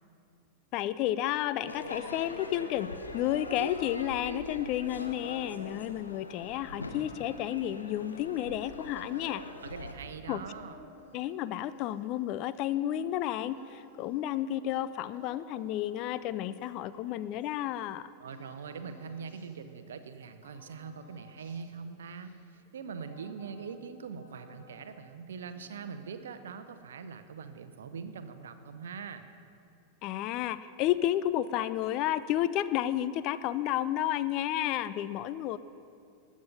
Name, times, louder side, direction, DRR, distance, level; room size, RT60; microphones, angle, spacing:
voice 1, 0.7-9.4 10.3-10.4 11.1-18.1 30.0-35.6, left 12 dB, 40° left, 14 dB, 0.4 m, -31 dB
Crowd / Fireworks, 1.7-9.9, left 2 dB, 80° left, 0.9 m, -42 dB
sound 1, 8.3-17.8 18.3-20.2 20.4-23.9 24.2-25.2 25.5-26.5, left 3 dB, 55° left, 2.2 m, -57 dB
voice 2, 9.6-10.8 18.2-29.2, right 6 dB, 65° right, 10 dB, 0.8 m, -42 dB
19.0 x 7.4 x 5.4 m, 2.4 s
figure-of-eight pair, 90°, 0 cm